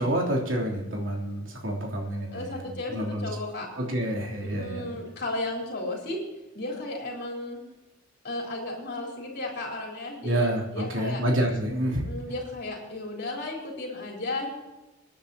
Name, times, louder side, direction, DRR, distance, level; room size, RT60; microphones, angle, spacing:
voice 1, 0.0-3.3 3.8-5.0 10.2-12.1, right 1 dB, 70° right, -1 dB, 3.2 m, -28 dB
voice 2, 2.3-3.7 4.4-6.2 6.5-7.6 8.2-11.2 12.0-14.5, left 2 dB, 55° left, -2 dB, 3.9 m, -34 dB
25.0 x 10.0 x 2.9 m, 1.0 s
head